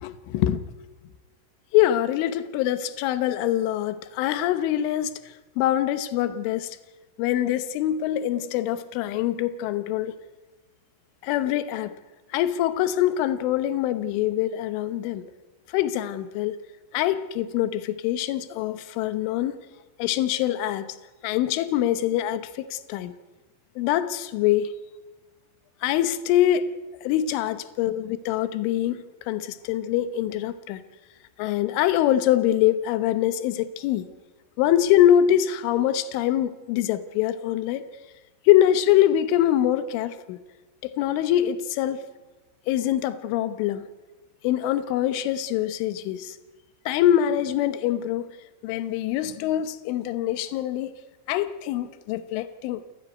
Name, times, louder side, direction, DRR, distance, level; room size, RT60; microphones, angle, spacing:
voice 1, 0.0-0.6 1.7-6.8 7.2-10.2 11.2-11.9 12.3-15.2 15.7-16.6 16.9-19.6 20.0-21.0 21.2-23.1 23.8-24.7 25.8-26.8 27.0-30.8 31.4-34.1 34.6-37.8 38.5-40.4 40.8-42.0 42.7-43.9 44.4-46.4 46.9-48.3 48.6-50.9 51.3-52.8, left 12 dB, 85° left, 11 dB, 3.5 m, -24 dB
30.0 x 13.0 x 9.8 m, 1.2 s
omnidirectional pair, 5.5 m